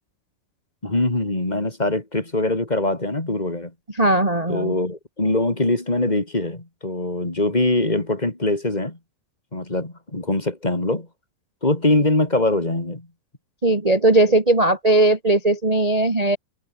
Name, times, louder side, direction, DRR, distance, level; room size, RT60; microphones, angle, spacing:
voice 1, 0.8-3.7 4.5-9.0 9.5-11.1 11.6-13.1, left 2 dB, 10° left, 2.9 m, -23 dB
voice 2, 4.0-4.7 13.6-16.4, right 2 dB, 15° right, 2.1 m, -18 dB
omnidirectional pair, 4.0 m